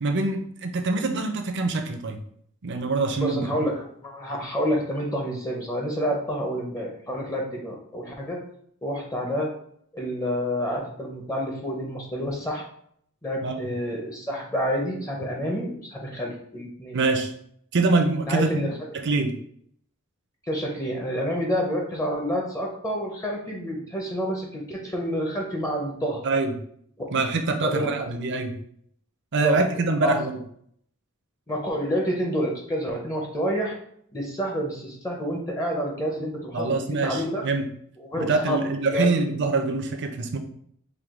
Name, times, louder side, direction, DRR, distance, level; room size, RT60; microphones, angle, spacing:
voice 1, 0.0-2.2 2.6-3.7 13.4-13.6 16.9-17.3 17.7-18.5 19.0-19.4 26.2-26.5 27.1-28.6 29.3-30.4 36.5-37.6 38.2-40.4, right 3 dB, 55° right, 5 dB, 0.5 m, -24 dB
voice 2, 3.2-8.4 8.8-9.5 9.9-12.6 13.2-17.0 18.3-18.7 20.4-26.2 27.0-27.1 27.6-27.9 29.4-29.6 30.0-30.2 31.5-33.8 34.1-37.4 38.0-39.1, equal, 15° left, 0 dB, 0.5 m, -28 dB
4.6 x 2.2 x 3.6 m, 0.66 s
head